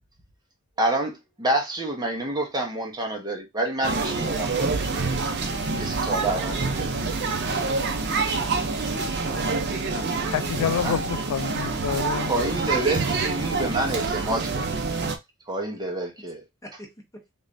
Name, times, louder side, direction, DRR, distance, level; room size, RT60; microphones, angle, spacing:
voice 1, 0.8-5.5 5.8-6.9 10.8-11.0 12.3-14.7 15.5-16.4, right 1 dB, 20° right, 1.0 m, -28 dB
sound 1, 3.8-15.2, right 4 dB, 55° right, 0.6 m, -26 dB
voice 2, 6.0-6.4 7.7-10.2 16.6-17.2, left 1 dB, 15° left, 0.9 m, -47 dB
voice 3, 9.7-12.3, left 8 dB, 80° left, 0.3 m, -29 dB
3.6 x 3.2 x 2.6 m
head